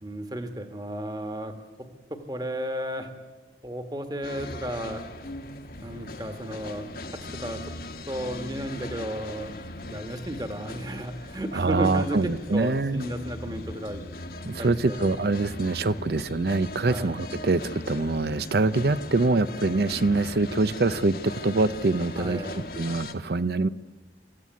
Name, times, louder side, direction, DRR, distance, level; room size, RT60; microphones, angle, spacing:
voice 1, 0.0-1.5 2.1-3.1 3.6-5.0 5.8-6.9 7.4-7.6 8.1-14.0 14.6-15.0 16.9-17.1 22.2-22.6, right 1 dB, 25° right, 7 dB, 1.7 m, -33 dB
sound 1, 4.2-23.1, left 2 dB, 55° left, 1.3 m, -39 dB
voice 2, 11.5-13.0 14.4-22.4 22.8-23.7, right 3 dB, 65° right, 16 dB, 0.6 m, -24 dB
25.5 x 14.5 x 9.5 m, 1.3 s
head